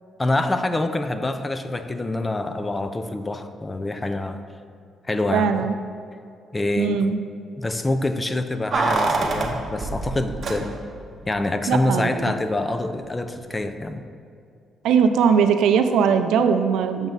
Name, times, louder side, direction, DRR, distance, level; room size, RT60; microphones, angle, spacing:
voice 1, 0.2-4.4 5.1-5.7 6.5-7.1 7.6-10.8 11.3-14.0, left 2 dB, 20° left, 9 dB, 0.5 m, -26 dB
voice 2, 5.3-5.7 6.8-7.2 11.7-12.3 14.8-17.1, right 6 dB, 85° right, 8 dB, 0.4 m, -20 dB
Keys jangling, 8.7-11.1 11.3-11.4, right 3 dB, 50° right, 0.8 m, -25 dB
7.1 x 5.4 x 3.9 m, 2.4 s
cardioid pair, 90°, 0 cm